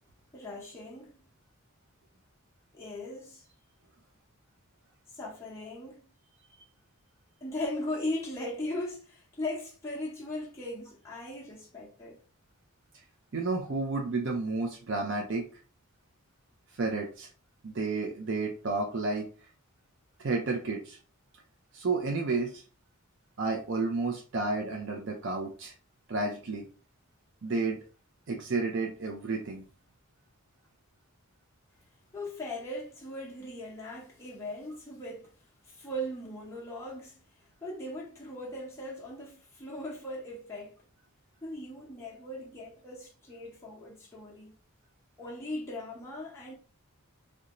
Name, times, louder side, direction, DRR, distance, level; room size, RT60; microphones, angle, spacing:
voice 1, 0.3-1.2 2.7-3.5 5.1-6.0 7.4-12.2 32.1-35.3 35.6-37.2 37.6-40.8 41.4-44.5 45.2-46.5, left 1 dB, 10° left, 0.7 m, -38 dB
voice 2, 13.3-15.5 16.7-17.3 17.6-19.3 20.2-21.0 21.7-22.6 23.4-25.7 26.1-26.7 27.4-27.8 28.3-29.6, right 3 dB, 55° right, 0.5 m, -31 dB
2.5 x 2.2 x 2.9 m
head